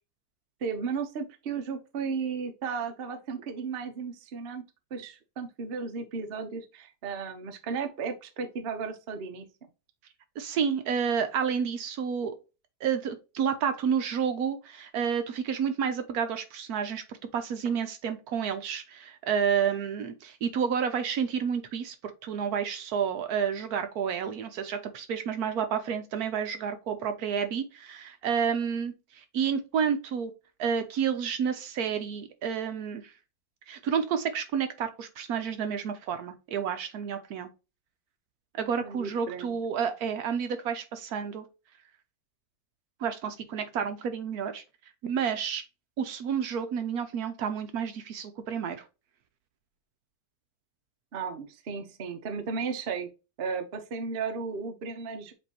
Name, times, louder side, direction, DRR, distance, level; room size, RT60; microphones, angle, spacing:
voice 1, 0.6-4.6 4.9-9.5 38.8-39.5 51.1-53.1 53.4-55.3, right 5 dB, 50° right, 0.7 m, -34 dB
voice 2, 10.4-12.4 12.8-30.3 30.6-33.1 33.7-37.5 38.5-41.5 43.0-44.6 45.0-45.6 46.0-48.8, right 7 dB, 70° right, 1.1 m, -30 dB
7.3 x 2.6 x 2.8 m
omnidirectional pair, 1.8 m